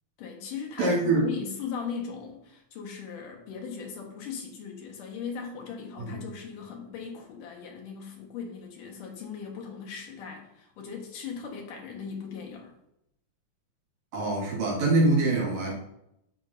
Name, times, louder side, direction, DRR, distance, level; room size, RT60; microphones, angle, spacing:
voice 1, 0.2-12.7, left 6 dB, 90° left, 0 dB, 3.2 m, -38 dB
voice 2, 0.8-1.2 6.0-6.2 14.1-15.7, right 2 dB, 60° right, -3 dB, 3.2 m, -24 dB
10.0 x 7.8 x 2.7 m, 0.80 s
omnidirectional pair, 3.6 m